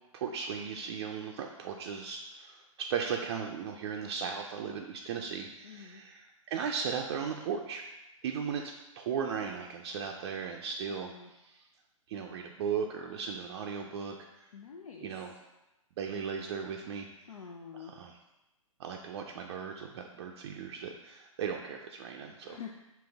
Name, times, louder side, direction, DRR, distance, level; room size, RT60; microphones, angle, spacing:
voice 1, 0.1-7.8 8.2-8.6 9.0-11.1 11.4-11.6 12.1-14.2 15.0-15.3 16.0-17.4 17.8-18.1 18.8-22.6, right 6 dB, 50° right, 1 dB, 0.4 m, -37 dB
voice 2, 5.6-6.0 10.9-11.3 14.5-15.1 17.3-17.9 22.4-22.7, left 7 dB, 80° left, 1 dB, 0.5 m, -46 dB
5.2 x 2.9 x 3.4 m, 0.96 s
hypercardioid pair, 120°, 18 cm